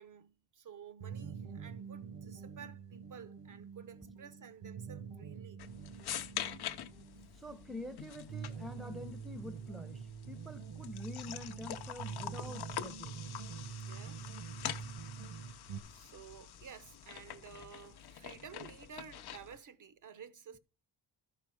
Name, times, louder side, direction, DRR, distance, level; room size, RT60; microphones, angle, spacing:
voice 1, 0.0-5.6 13.9-14.3 15.9-20.6, right 7 dB, 45° right, 0.7 m, -53 dB
sound 1, 1.0-15.8, right 6 dB, 80° right, 1.2 m, -46 dB
sound 2, 5.6-19.6, left 10 dB, 65° left, 0.8 m, -45 dB
voice 2, 7.4-13.2, left 1 dB, ahead, 0.7 m, -47 dB
12.5 x 5.0 x 4.9 m
cardioid pair, 120°, 42 cm